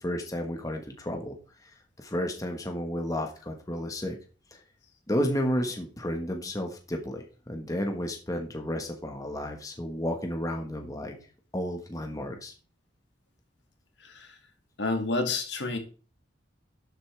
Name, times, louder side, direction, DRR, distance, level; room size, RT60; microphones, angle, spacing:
voice 1, 0.0-1.3 1.6-1.7 2.0-4.2 4.5-4.6 5.1-11.1 11.5-12.5, equal, 20° left, 3 dB, 1.4 m, -32 dB
voice 2, 14.8-15.8, left 3 dB, 70° left, 5 dB, 2.3 m, -29 dB
11.5 x 8.0 x 3.4 m, 0.36 s
head